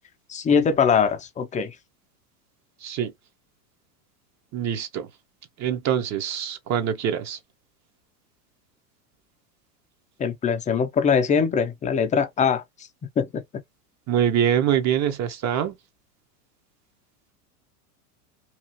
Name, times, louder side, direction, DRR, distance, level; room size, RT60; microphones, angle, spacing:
voice 1, 0.3-1.7 10.2-12.6 13.2-13.4, left 6 dB, 15° left, 0.5 m, -22 dB
voice 2, 2.8-3.1 4.5-5.1 5.6-7.4 14.1-15.7, right 9 dB, 35° right, 1.0 m, -24 dB
3.1 x 2.5 x 2.8 m
supercardioid pair, 120°, 47 cm